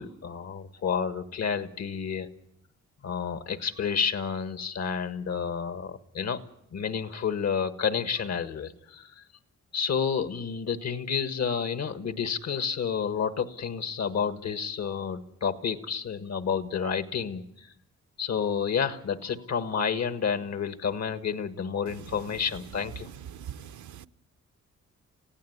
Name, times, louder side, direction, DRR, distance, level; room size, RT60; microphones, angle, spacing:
voice 1, 0.0-2.3 3.0-6.4 6.7-9.2 9.7-17.7 18.2-23.1, left 6 dB, 65° left, 1.6 m, -30 dB
voice 2, 23.3-24.1, right 9 dB, 80° right, 0.8 m, -42 dB
25.0 x 16.0 x 9.5 m
cardioid pair, 105°, 29 cm